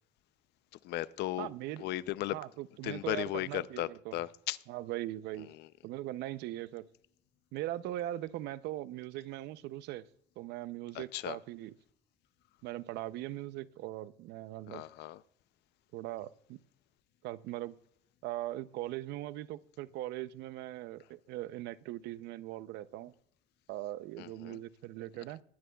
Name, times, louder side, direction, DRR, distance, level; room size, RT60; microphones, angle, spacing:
voice 1, 0.8-1.5 1.8-2.4 2.8-4.6 5.6-5.7 10.9-11.4 14.7-15.2 24.2-24.6, left 16 dB, 80° left, 0.5 m, -36 dB
voice 2, 1.4-1.9 2.3-4.2 4.7-5.5 5.8-6.9 7.5-10.0 10.4-11.7 12.6-14.8 15.9-16.6 17.2-17.7 18.2-23.1 23.7-25.4, right 15 dB, 85° right, 0.6 m, -40 dB
19.0 x 12.0 x 2.3 m
cardioid pair, 110°, 17 cm